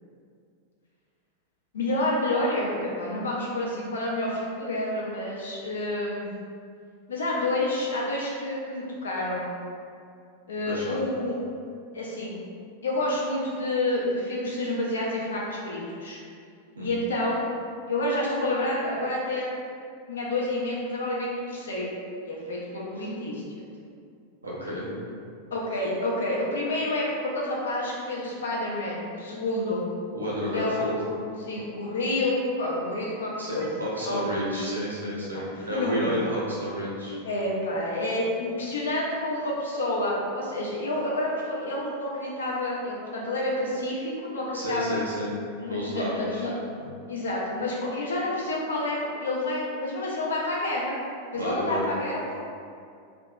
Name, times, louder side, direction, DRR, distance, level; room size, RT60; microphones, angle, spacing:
voice 1, 1.7-6.3 7.1-9.5 10.5-11.4 11.9-12.4 12.8-16.2 16.8-17.4 17.9-19.5 20.1-21.9 22.2-23.6 25.5-29.8 30.5-31.1 31.4-34.5 35.3-36.2 37.2-45.1 45.6-46.5 47.1-51.0 51.3-52.3, left 1 dB, 65° left, -4 dB, 0.5 m, -29 dB
voice 2, 10.6-11.0 16.7-17.0 23.0-23.1 24.4-24.9 30.1-30.9 33.4-37.2 44.5-45.3 45.7-46.4 46.8-46.9 51.3-51.8, equal, 80° right, -6 dB, 0.6 m, -31 dB
2.7 x 2.2 x 2.2 m, 2.3 s
figure-of-eight pair, 90°, 0 cm